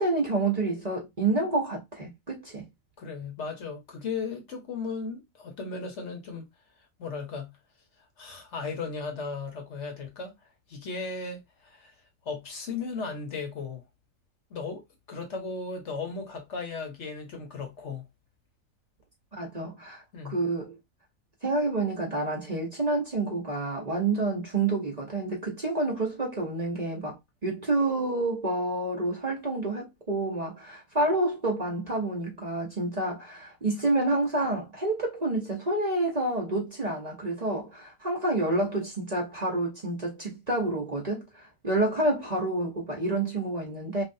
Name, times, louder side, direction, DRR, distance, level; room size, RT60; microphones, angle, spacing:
voice 1, 0.0-2.6 19.3-20.0 20.3-20.8 21.4-44.0, right 2 dB, 35° right, 0.8 m, -28 dB
voice 2, 3.0-6.5 7.0-7.6 8.2-10.3 10.7-11.9 12.2-13.8 14.5-18.1 20.1-20.4, left 4 dB, 60° left, 1.1 m, -36 dB
3.3 x 2.4 x 2.6 m
omnidirectional pair, 1.4 m